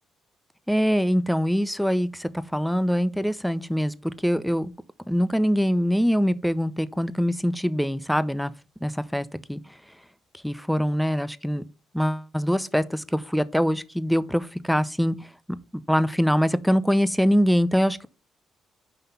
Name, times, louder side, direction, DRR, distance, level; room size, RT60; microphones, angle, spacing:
voice 1, 0.7-4.7 5.1-8.5 8.8-9.6 10.4-11.6 11.9-15.2 15.5-15.6 15.9-18.1, equal, ahead, 0.6 m, -23 dB
5.8 x 5.6 x 5.6 m
cardioid pair, 90°, 0 cm